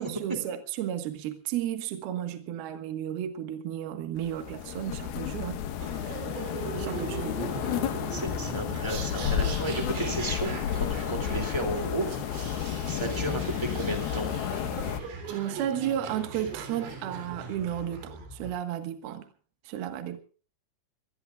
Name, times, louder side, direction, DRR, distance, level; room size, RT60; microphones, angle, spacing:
voice 1, 0.0-5.7 6.8-7.3 15.3-19.3 19.6-20.2, right 10 dB, 65° right, 3.0 m, -33 dB
sound 1, 4.2-15.0, left 9 dB, 70° left, 2.6 m, -32 dB
sound 2, 5.8-18.5, right 4 dB, 85° right, 6.1 m, -40 dB
voice 2, 7.8-12.1 12.4-14.3, right 2 dB, 15° right, 1.1 m, -34 dB
25.0 x 19.0 x 2.4 m
omnidirectional pair, 5.6 m